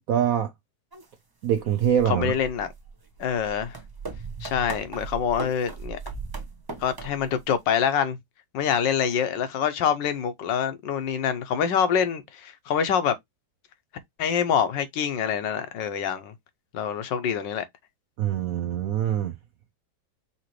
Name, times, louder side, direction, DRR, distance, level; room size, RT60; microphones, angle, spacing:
voice 1, 0.1-0.5 1.4-2.3 18.2-19.4, right 9 dB, 70° right, 0.8 m, -24 dB
sound 1, 0.9-1.0 1.5-7.4, right 4 dB, 40° right, 0.3 m, -38 dB
voice 2, 2.1-2.7 3.2-3.7 4.4-6.0 6.8-8.2 8.5-13.1 14.2-16.3 16.7-17.6, left 8 dB, 75° left, 1.4 m, -25 dB
5.7 x 3.0 x 3.0 m
omnidirectional pair, 2.0 m